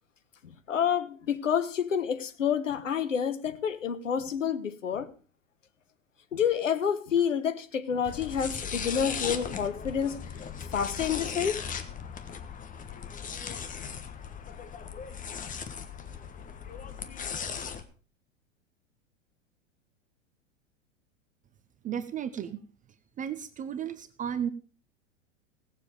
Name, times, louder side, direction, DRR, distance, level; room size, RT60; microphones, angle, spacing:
voice 1, 0.4-5.1 6.3-10.3 10.7-11.6 12.3-12.4, left 8 dB, 80° left, 1.3 m, -29 dB
sound 1, 8.1-17.8, left 7 dB, 20° left, 1.3 m, -37 dB
voice 2, 21.8-22.6 23.2-24.5, right 8 dB, 20° right, 0.7 m, -34 dB
18.0 x 7.4 x 5.1 m
figure-of-eight pair, 95°, 38 cm